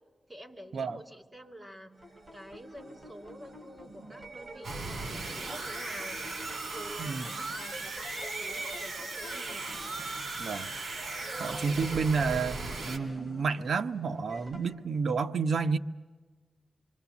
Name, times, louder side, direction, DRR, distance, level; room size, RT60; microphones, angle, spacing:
voice 1, 0.3-1.9 2.3-6.2 6.7-9.7 11.2-11.6 12.1-12.3 12.6-12.7, equal, 15° right, 3.0 m, -48 dB
sound 1, 1.9-14.7, right 1 dB, 35° right, 5.0 m, -48 dB
sound 2, 4.6-13.0, right 3 dB, 60° right, 3.4 m, -37 dB
voice 2, 10.4-10.7 11.4-12.6 12.8-15.8, right 5 dB, 80° right, 0.8 m, -30 dB
27.0 x 24.5 x 7.2 m
wide cardioid pair, 110°, 0 cm